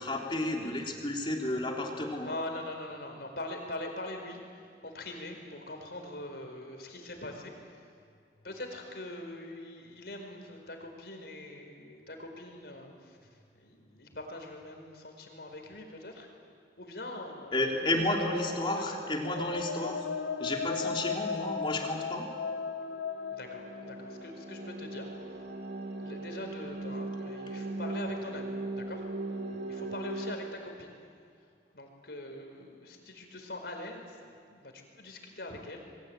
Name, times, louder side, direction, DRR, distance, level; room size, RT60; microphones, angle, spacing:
voice 1, 0.0-2.3 17.5-20.1 20.4-22.3, left 1 dB, 30° left, 0 dB, 3.4 m, -31 dB
voice 2, 2.2-7.9 8.4-13.3 13.6-16.3 16.8-18.3 18.6-19.0 23.3-25.1 26.0-29.0 29.7-31.0 31.7-34.2 34.5-35.8, left 1 dB, 65° left, 3 dB, 4.8 m, -43 dB
sound 1, 18.8-24.6, left 5 dB, 85° left, 0.7 m, -37 dB
sound 2, 22.6-30.3, right 2 dB, 65° right, 2.8 m, -39 dB
28.0 x 22.0 x 9.0 m, 2.2 s
head